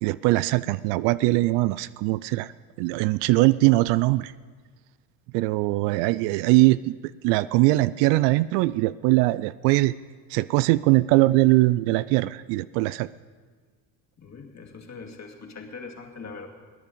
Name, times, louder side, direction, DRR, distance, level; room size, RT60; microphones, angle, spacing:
voice 1, 0.0-2.5 2.8-4.3 5.3-9.9 10.3-13.1, right 20 dB, 65° right, 17 dB, 0.5 m, -21 dB
voice 2, 14.2-16.5, left 4 dB, 35° left, 1 dB, 2.5 m, -41 dB
18.5 x 10.5 x 5.4 m, 1.5 s
hypercardioid pair, 60°, 45 cm